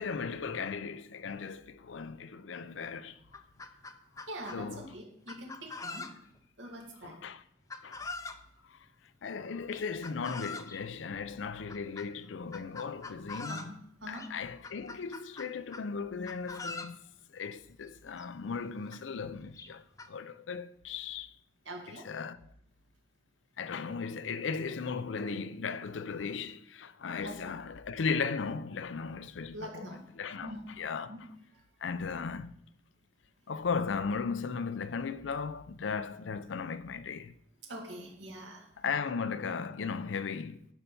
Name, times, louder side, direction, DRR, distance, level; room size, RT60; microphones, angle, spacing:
voice 1, 0.0-3.2 4.5-5.0 7.0-7.4 7.8-8.1 8.7-8.8 9.2-13.7 14.1-17.0 17.3-21.3 22.0-22.4 23.6-29.9 30.2-31.2 31.8-32.6 33.5-37.3 38.8-40.7, left 5 dB, 85° left, 0.5 m, -36 dB
Chicken rooster, 2.7-2.8 3.1-4.6 5.3-6.4 7.7-8.4 9.7-10.8 11.7-12.1 12.5-13.7 14.1-14.3 14.6-15.9 16.2-17.0 17.9-18.0 18.2-18.3 18.9-19.0 19.6-20.1, left 3 dB, 15° left, 0.5 m, -43 dB
voice 2, 4.3-6.1 6.6-7.2 13.5-13.7 14.0-14.3 21.7-22.1 27.2-27.3 29.5-30.0 30.4-30.7 31.1-31.3 37.7-38.7, right 1 dB, 80° right, 2.3 m, -43 dB
11.5 x 5.5 x 5.5 m
head